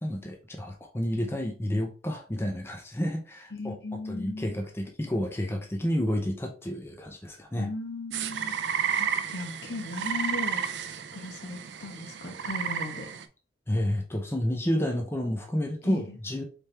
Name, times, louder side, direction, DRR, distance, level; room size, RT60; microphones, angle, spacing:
voice 1, 0.0-7.7 8.9-9.0 13.7-16.4, equal, 15° left, 0.6 m, -30 dB
voice 2, 3.5-4.5 7.5-8.5 9.0-10.6 11.1-13.1 15.8-16.2, left 2 dB, 65° left, 1.1 m, -37 dB
sound 1, 8.1-13.2, right 7 dB, 80° right, 0.5 m, -32 dB
4.2 x 3.4 x 3.3 m
head